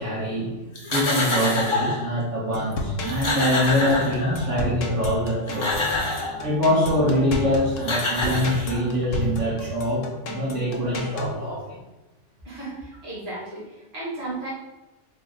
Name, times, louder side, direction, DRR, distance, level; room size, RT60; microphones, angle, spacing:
voice 1, 0.0-5.9 6.4-11.7, equal, 70° right, -9 dB, 1.4 m, -24 dB
sound 1, 0.7-2.1 2.7-2.8 3.0-4.6 5.3-6.4 7.4-7.5 7.8-9.0, left 2 dB, 35° left, 0.5 m, -26 dB
sound 2, 2.5-11.3, left 1 dB, 80° left, 1.0 m, -32 dB
voice 2, 12.4-14.5, right 2 dB, 55° right, -7 dB, 1.5 m, -34 dB
3.6 x 2.0 x 3.6 m, 1.1 s
omnidirectional pair, 1.3 m